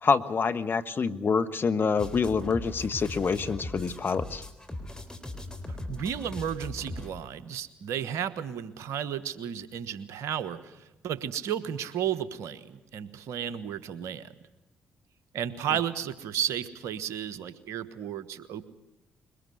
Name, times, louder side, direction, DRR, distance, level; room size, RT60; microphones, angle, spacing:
voice 1, 0.0-4.4, left 5 dB, 45° left, 10 dB, 1.2 m, -26 dB
sound 1, 2.0-7.1, left 1 dB, 15° left, 4.0 m, -39 dB
voice 2, 5.7-14.3 15.3-18.6, right 9 dB, 70° right, 15 dB, 1.2 m, -33 dB
22.5 x 20.0 x 7.9 m, 0.99 s
hypercardioid pair, 45°, 5 cm